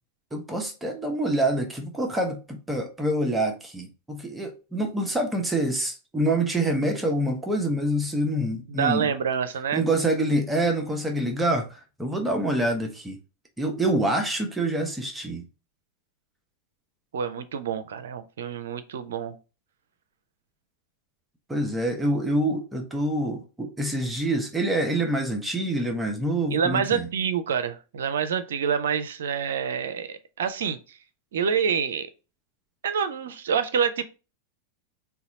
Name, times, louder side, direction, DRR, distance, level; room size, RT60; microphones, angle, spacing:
voice 1, 0.3-9.1 9.7-13.2 13.6-15.4 21.5-27.1, right 1 dB, 10° right, 0.7 m, -26 dB
voice 2, 8.7-9.8 17.1-19.4 26.5-31.0 31.3-32.1 32.8-34.0, right 7 dB, 60° right, 0.5 m, -27 dB
3.9 x 2.3 x 4.0 m
figure-of-eight pair, 90°, 0 cm